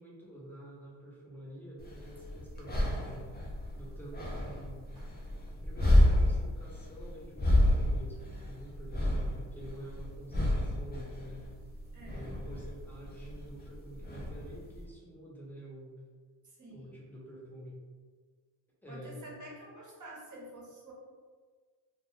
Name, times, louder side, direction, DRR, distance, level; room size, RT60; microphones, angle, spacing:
voice 1, 0.0-4.9 5.6-11.5 12.1-15.9 16.7-17.8 18.8-19.3, equal, 5° left, -6 dB, 1.0 m, -48 dB
sound 1, 1.8-14.8, left 1 dB, 20° left, 0.6 m, -30 dB
voice 2, 8.2-8.5 11.9-12.3 16.4-17.0 18.9-20.9, right 1 dB, 40° right, -3 dB, 1.0 m, -49 dB
2.3 x 2.2 x 3.3 m, 1.5 s
cardioid pair, 75°, 48 cm